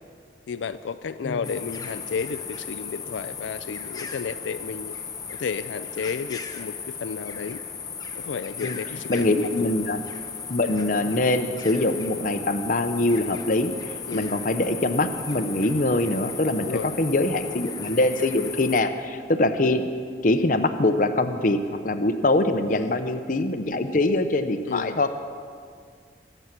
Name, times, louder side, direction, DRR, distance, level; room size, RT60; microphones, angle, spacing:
voice 1, 0.5-5.0 5.3-7.6 8.2-9.5 14.1-14.3 16.6-16.9 22.7-22.9 24.7-25.0, left 6 dB, 85° left, 12 dB, 0.4 m, -32 dB
sound 1, 1.4-18.8, left 6 dB, 20° left, 0.8 m, -36 dB
voice 2, 9.1-10.0 10.5-19.8 20.2-25.1, left 2 dB, 45° left, 8 dB, 0.7 m, -23 dB
23.5 x 8.0 x 6.0 m, 2.2 s
head